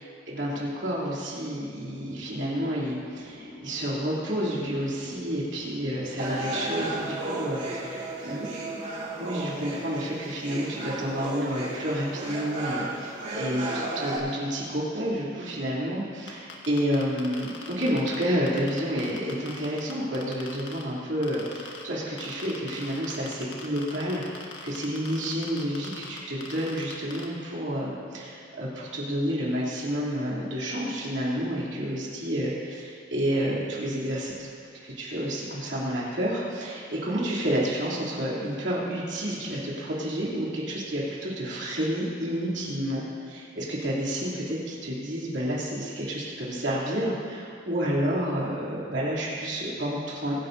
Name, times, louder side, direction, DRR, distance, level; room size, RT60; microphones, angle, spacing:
voice 1, 0.3-8.6 9.2-12.9 13.3-34.5 34.8-50.5, equal, 70° right, -6 dB, 3.1 m, -30 dB
sound 1, 1.8-7.2, equal, 40° left, 1.1 m, -45 dB
sound 2, 6.2-14.2, right 2 dB, 40° right, 2.8 m, -34 dB
sound 3, 16.3-20.8 21.2-21.8 22.2-27.2, left 5 dB, 70° left, 1.6 m, -41 dB
24.0 x 11.0 x 2.7 m, 2.2 s
head